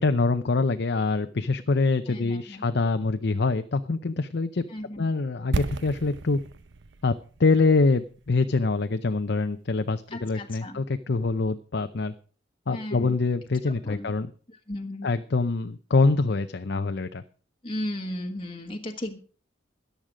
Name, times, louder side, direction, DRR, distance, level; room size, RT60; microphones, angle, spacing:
voice 1, 0.0-4.6 5.0-6.4 7.0-7.1 7.4-12.1 12.7-14.3 15.0-17.2, left 3 dB, 55° left, 9 dB, 0.6 m, -25 dB
voice 2, 2.1-2.7 4.7-5.1 10.1-10.8 12.7-13.2 13.7-14.1 14.7-15.1 17.6-19.2, left 1 dB, 25° left, 4 dB, 1.3 m, -35 dB
sound 1, 5.5-9.5 9.7-9.8, right 3 dB, 60° right, 0.7 m, -34 dB
14.0 x 10.5 x 5.1 m, 0.42 s
head